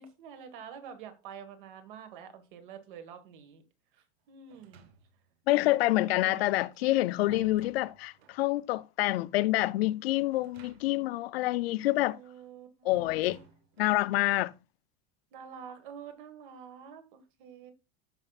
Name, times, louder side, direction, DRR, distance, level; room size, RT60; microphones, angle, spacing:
voice 1, 0.0-3.6 3.9-4.9 5.6-7.0 7.3-7.7 12.1-13.4 15.3-17.7, right 7 dB, 55° right, 1.6 m, -48 dB
sound 1, 4.5-5.3 6.6-8.4 10.3-11.1 11.4-11.5 12.9-14.0, right 4 dB, 80° right, 1.3 m, -54 dB
voice 2, 5.5-12.2 12.8-13.4 13.8-14.5, left 17 dB, 75° left, 0.5 m, -27 dB
14.5 x 5.5 x 2.4 m
supercardioid pair, 180°, 30 cm